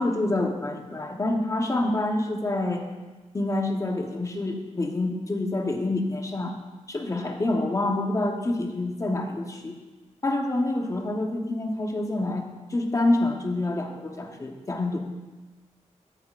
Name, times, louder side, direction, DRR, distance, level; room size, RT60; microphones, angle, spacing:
voice 1, 0.0-2.9 3.3-6.6 6.9-9.8 10.2-15.0, left 2 dB, 25° left, 3 dB, 0.9 m, -27 dB
13.0 x 8.4 x 2.4 m, 1.2 s
wide cardioid pair, 155°, 12 cm